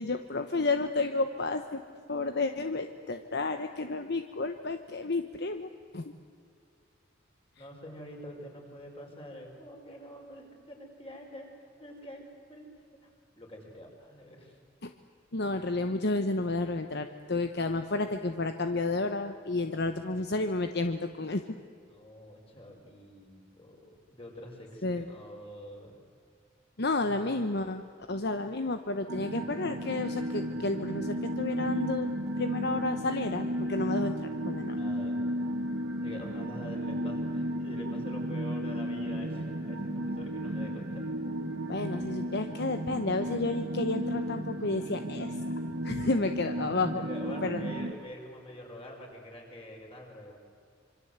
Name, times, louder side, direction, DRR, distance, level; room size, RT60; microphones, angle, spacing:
voice 1, 0.0-1.8 2.1-6.1 14.8-14.9 15.3-21.4 24.8-25.1 26.8-27.8 28.1-32.1 32.4-34.8 41.7-45.4 45.8-47.1 47.4-47.7, left 2 dB, 55° left, 8 dB, 1.1 m, -31 dB
voice 2, 7.6-12.2 12.5-13.1 13.4-14.6 21.9-26.0 34.8-35.2 36.0-41.1 46.9-50.4, equal, 30° left, 1 dB, 5.6 m, -46 dB
sound 1, 29.1-47.9, equal, 65° right, 2.0 m, -34 dB
26.0 x 25.0 x 8.2 m, 2.2 s
head